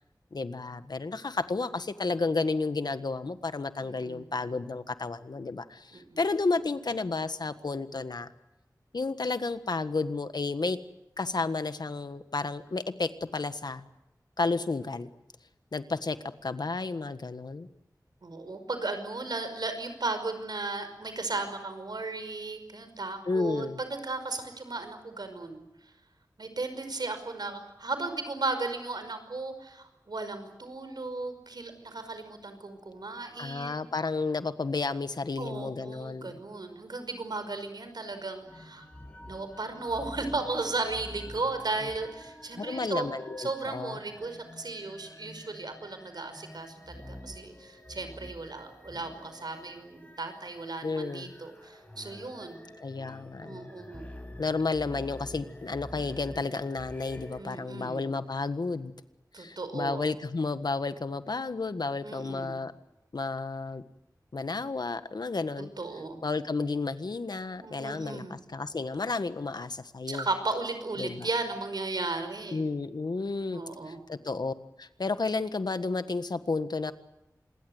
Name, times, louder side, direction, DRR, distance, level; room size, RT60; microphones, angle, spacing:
voice 1, 0.3-8.3 8.9-10.8 11.2-13.8 14.4-15.1 15.7-16.2 16.4-17.7 23.2-23.8 33.4-36.4 42.5-44.0 50.8-51.3 52.8-53.7 54.4-58.9 59.4-62.7 63.1-63.8 64.3-65.7 66.2-70.3 71.0-71.3 72.5-76.9, left 3 dB, 75° left, 11 dB, 1.5 m, -32 dB
voice 2, 3.8-4.3 5.9-6.2 18.2-25.6 26.4-33.8 35.4-38.9 39.3-43.1 43.4-52.7 53.4-54.1 57.4-58.1 59.3-60.1 62.0-62.6 65.6-66.2 67.6-68.3 70.1-72.6 73.4-74.0, right 3 dB, 75° right, 8 dB, 5.3 m, -35 dB
sound 1, 38.4-57.4, left 1 dB, 20° left, 7.3 m, -48 dB
27.0 x 21.5 x 8.0 m, 0.94 s
wide cardioid pair, 70°, 7 cm